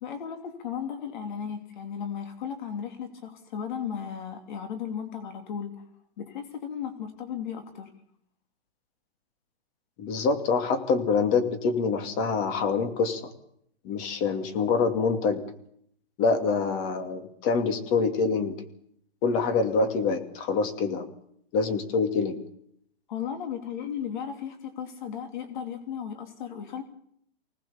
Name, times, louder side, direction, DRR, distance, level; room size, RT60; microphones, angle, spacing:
voice 1, 0.0-5.8 6.2-7.9 23.1-26.8, left 8 dB, 50° left, 7 dB, 2.9 m, -35 dB
voice 2, 10.0-13.2 13.8-15.4 16.2-18.6 19.2-21.1 21.5-22.4, left 4 dB, 25° left, 8 dB, 2.6 m, -25 dB
25.0 x 19.0 x 7.1 m, 0.69 s
hypercardioid pair, 160°, 31 cm